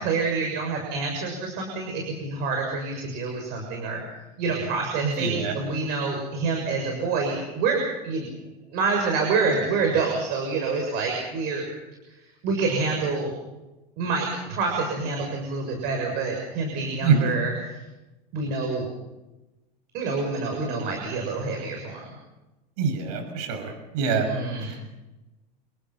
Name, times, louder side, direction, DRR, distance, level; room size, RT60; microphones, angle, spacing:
voice 1, 0.0-4.0 4.4-8.3 8.7-11.7 12.1-12.2 12.4-13.3 14.0-17.8 18.3-18.9 19.9-22.1 24.1-24.7, right 4 dB, 55° right, 2 dB, 6.9 m, -27 dB
voice 2, 5.0-5.5 17.0-17.3 22.8-24.3 24.6-24.9, right 5 dB, 70° right, 6 dB, 6.3 m, -25 dB
28.5 x 23.0 x 5.8 m, 1.0 s
supercardioid pair, 145°, 21 cm